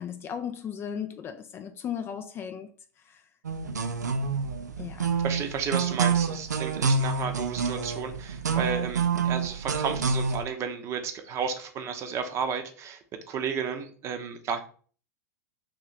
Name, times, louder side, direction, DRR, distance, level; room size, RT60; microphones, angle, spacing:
voice 1, 0.0-2.7 3.1-3.2 4.8-5.2, left 8 dB, 25° left, 0.3 m, -36 dB
sound 1, 3.4-10.4, right 5 dB, 80° right, 0.4 m, -28 dB
voice 2, 5.2-14.6, right 6 dB, 30° right, 0.6 m, -33 dB
3.0 x 3.0 x 3.9 m
figure-of-eight pair, 90°, 9 cm